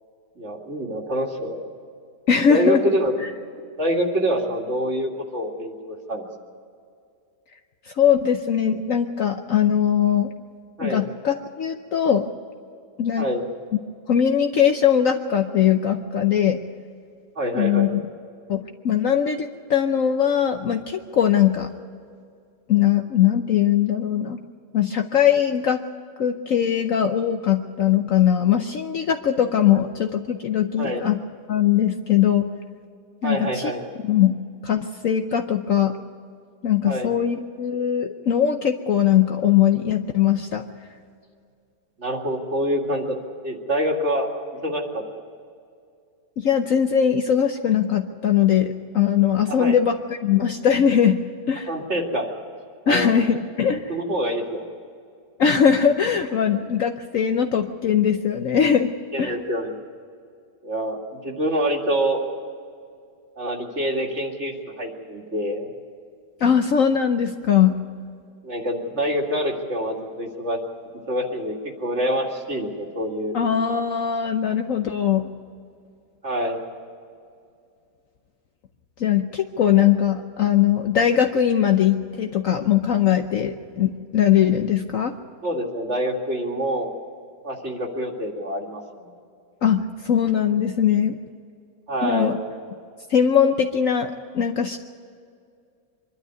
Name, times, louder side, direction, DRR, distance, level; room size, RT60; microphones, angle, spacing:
voice 1, 0.4-1.6 2.5-3.2 3.8-6.3 10.8-11.0 13.2-13.4 17.4-17.9 30.8-31.0 33.2-33.8 36.9-37.1 42.0-43.2 43.4-44.3 44.6-45.0 49.5-49.8 51.7-52.3 52.8-53.1 53.9-54.6 59.1-59.7 60.6-62.2 63.4-65.7 68.4-70.6 71.1-73.4 76.2-76.6 85.4-86.9 87.4-88.8 91.9-92.4, equal, 40° right, 1 dB, 2.6 m, -26 dB
voice 2, 2.3-2.8 7.9-10.3 10.8-12.3 13.0-13.3 14.1-16.6 17.5-18.0 18.5-21.7 22.7-24.4 24.7-25.8 26.2-31.2 31.5-32.5 33.2-33.7 34.0-34.4 34.6-36.0 36.6-40.6 46.4-51.2 51.5-51.7 52.9-53.9 55.4-58.9 59.2-59.4 66.4-67.8 73.3-75.3 79.0-85.1 89.6-91.2 92.0-92.4 93.1-94.8, left 9 dB, 60° left, 6 dB, 1.0 m, -20 dB
24.5 x 12.0 x 9.5 m, 2.3 s
omnidirectional pair, 1.8 m